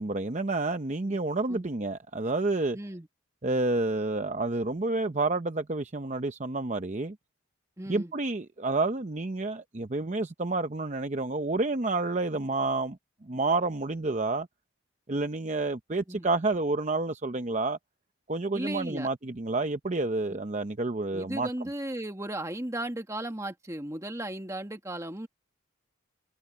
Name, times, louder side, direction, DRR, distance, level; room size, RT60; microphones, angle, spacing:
voice 1, 0.0-2.8 3.4-7.2 7.9-14.5 15.1-17.8 18.3-21.5, right 2 dB, 35° right, 0.7 m, -29 dB
voice 2, 2.7-3.1 7.8-8.1 16.1-16.3 18.5-19.1 21.1-25.3, right 1 dB, 15° right, 1.6 m, -36 dB
head